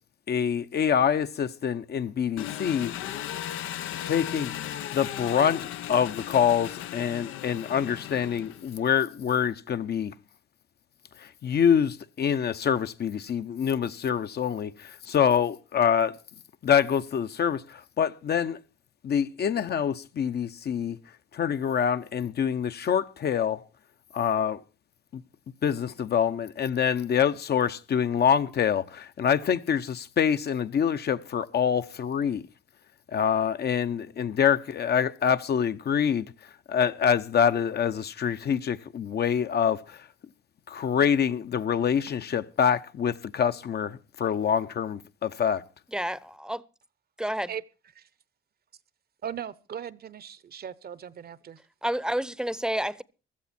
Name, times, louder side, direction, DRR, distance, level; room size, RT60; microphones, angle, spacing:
voice 1, 0.3-2.9 4.1-4.5 4.9-10.1 11.2-16.2 16.6-18.6 19.0-21.0 21.3-23.6 24.1-24.6 25.1-25.2 25.6-32.4 33.1-36.3 36.7-40.1 40.7-45.6, left 8 dB, 55° left, 1.0 m, -26 dB
Engine, 2.4-8.9, left 12 dB, 90° left, 0.9 m, -36 dB
voice 2, 45.9-46.6 47.2-47.5 51.8-53.0, right 1 dB, 5° right, 0.8 m, -29 dB
voice 3, 49.2-51.6, right 8 dB, 50° right, 0.9 m, -38 dB
16.0 x 13.5 x 4.3 m
cardioid pair, 90°, 20 cm